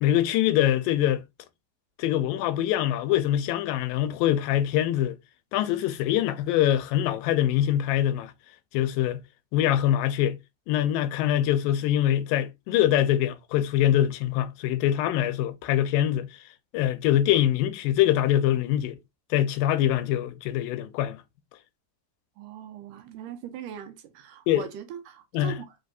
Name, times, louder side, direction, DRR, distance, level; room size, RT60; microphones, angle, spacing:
voice 1, 0.0-1.2 2.0-5.2 5.5-8.3 8.7-9.2 9.5-10.4 10.7-16.3 16.7-19.0 19.3-21.2 24.5-24.6 25.3-25.6, left 12 dB, 85° left, 2.3 m, -24 dB
voice 2, 22.4-25.8, right 9 dB, 80° right, 2.2 m, -40 dB
5.2 x 3.2 x 2.5 m
omnidirectional pair, 3.9 m